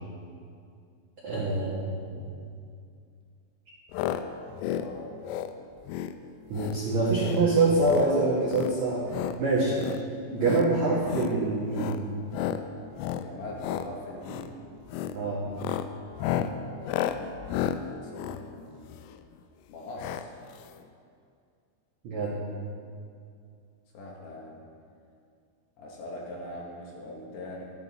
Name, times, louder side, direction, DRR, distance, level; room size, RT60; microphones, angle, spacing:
voice 1, 1.2-2.3 6.5-9.8 10.3-12.0 15.1-15.5 22.0-22.3, right 3 dB, 75° right, -7 dB, 1.7 m, -25 dB
sound 1, 3.9-4.2 4.5-4.9 5.2-5.5 5.9-6.1 6.5-6.8 7.1-7.4 7.8-8.1 8.5-9.4 9.7-10.0 10.4-10.7 11.0-11.3 11.7-12.0 12.3-12.6 13.0-13.3 13.6-13.9 14.2-14.5 14.9-15.2 15.5-19.2 20.0-20.3 20.5-20.6 20.8-20.9, left 10 dB, 85° left, 3.0 m, -32 dB
voice 2, 4.7-5.2 13.2-14.6 16.6-17.0 17.9-18.9 19.7-20.3 23.9-24.6 25.8-27.6, left 1 dB, 70° left, -2 dB, 3.2 m, -41 dB
12.5 x 10.5 x 4.2 m, 2.3 s
omnidirectional pair, 5.8 m